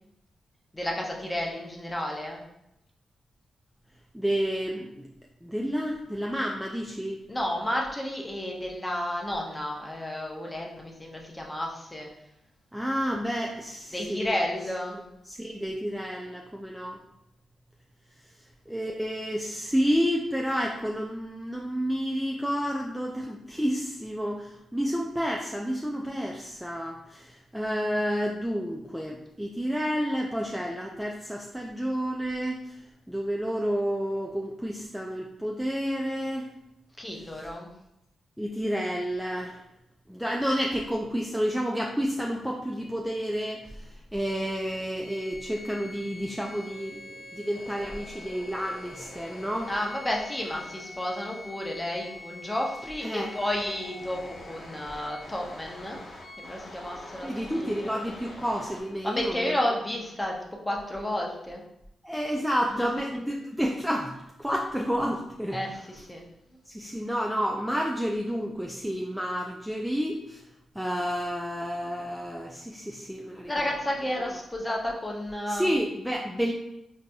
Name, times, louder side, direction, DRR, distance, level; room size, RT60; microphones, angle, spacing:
voice 1, 0.7-2.4 7.3-12.1 13.9-15.0 37.0-37.7 49.7-56.0 56.4-57.9 59.0-60.4 60.7-61.6 62.7-62.9 65.5-66.2 73.5-75.7, left 1 dB, 15° left, -1 dB, 0.7 m, -32 dB
voice 2, 4.1-5.1 5.4-7.2 12.7-14.4 14.9-17.0 18.3-36.5 38.4-39.6 40.1-49.7 53.0-53.3 57.2-59.6 62.0-65.6 66.7-70.4 70.7-73.7 75.5-76.5, equal, 5° right, -1 dB, 0.3 m, -30 dB
sound 1, 45.0-58.8, left 2 dB, 65° left, 0.8 m, -44 dB
3.8 x 2.7 x 2.3 m, 0.84 s
cardioid pair, 60°, 0 cm